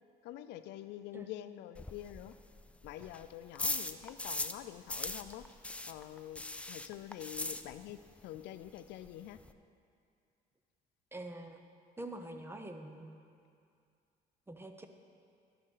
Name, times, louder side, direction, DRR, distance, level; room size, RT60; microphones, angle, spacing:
voice 1, 0.2-2.3 2.8-5.5 5.8-6.4 6.7-9.4, left 13 dB, 85° left, 12 dB, 0.5 m, -46 dB
sound 1, 1.7-4.6 4.9-8.1 8.3-8.4 8.8-8.9 9.0-9.5, left 2 dB, 5° left, 0.4 m, -40 dB
voice 2, 11.1-11.6 12.0-13.1 14.5-14.9, right 1 dB, 15° right, 5 dB, 0.8 m, -45 dB
12.0 x 10.5 x 3.9 m, 2.4 s
cardioid pair, 110°, 17 cm